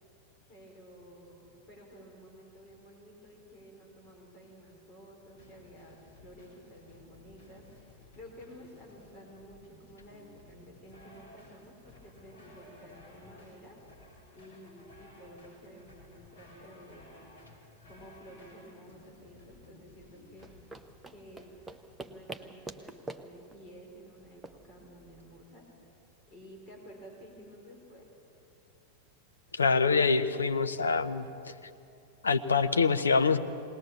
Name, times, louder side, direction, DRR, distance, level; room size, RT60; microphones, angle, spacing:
voice 1, 0.5-7.6 8.1-13.8 14.3-17.1 17.9-20.5 21.1-21.5 22.0-25.7 26.3-28.1, equal, 30° left, -1 dB, 4.3 m, -52 dB
sound 1, 5.3-22.5, left 2 dB, 55° left, 6.6 m, -56 dB
sound 2, 20.3-25.5, right 3 dB, 10° right, 0.9 m, -47 dB
voice 2, 29.5-31.2 32.2-33.4, left 4 dB, 75° left, 9 dB, 0.8 m, -25 dB
20.0 x 19.5 x 7.2 m, 2.7 s
figure-of-eight pair, 90°, 0 cm